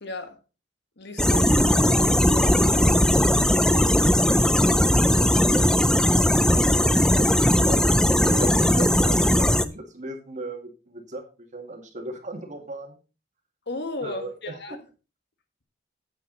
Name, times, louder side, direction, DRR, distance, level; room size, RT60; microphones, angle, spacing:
voice 1, 0.0-0.4 1.0-3.3 3.6-4.8 5.1-5.7 13.6-14.8, left 2 dB, 60° left, 1.6 m, -37 dB
sound 1, 1.2-9.7, equal, 5° left, 0.4 m, -19 dB
voice 2, 6.7-7.8 8.1-12.9 14.0-14.8, right 2 dB, 40° right, 2.2 m, -36 dB
9.2 x 9.0 x 4.0 m
head